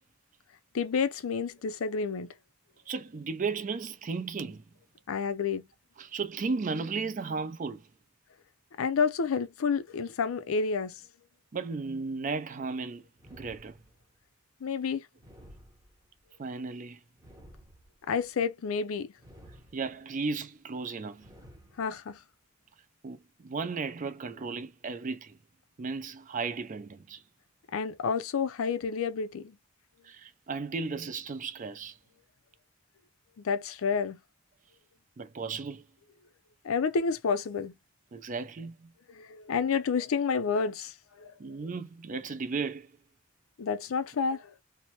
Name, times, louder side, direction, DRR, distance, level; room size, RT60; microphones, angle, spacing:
voice 1, 0.7-2.3 5.1-5.7 8.8-11.0 14.6-15.1 18.1-19.1 21.8-22.2 27.7-29.6 33.4-34.2 36.6-37.7 39.1-41.3 43.6-44.5, left 5 dB, 80° left, 0.5 m, -29 dB
voice 2, 2.9-4.6 6.0-7.9 11.5-13.0 13.3-13.8 16.4-17.0 19.7-21.3 23.0-25.4 25.8-27.2 30.0-32.0 35.2-35.9 38.1-38.9 41.4-42.9, right 4 dB, 40° right, 0.4 m, -35 dB
sound 1, 13.2-14.2 15.2-16.2 17.2-18.2 19.2-20.2 21.2-22.2, equal, 15° right, 0.9 m, -54 dB
2.8 x 2.0 x 3.0 m
head